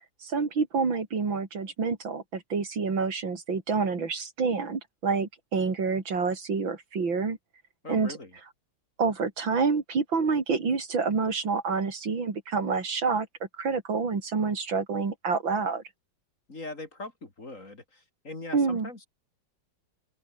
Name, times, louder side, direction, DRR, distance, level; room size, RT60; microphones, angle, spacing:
voice 1, 0.2-7.4 7.9-8.1 9.0-13.3 13.6-15.8 18.5-18.9, right 5 dB, 85° right, 4.0 m, -28 dB
voice 2, 7.8-8.3 16.5-19.1, left 2 dB, 40° left, 4.0 m, -41 dB
omnidirectional pair, 2.0 m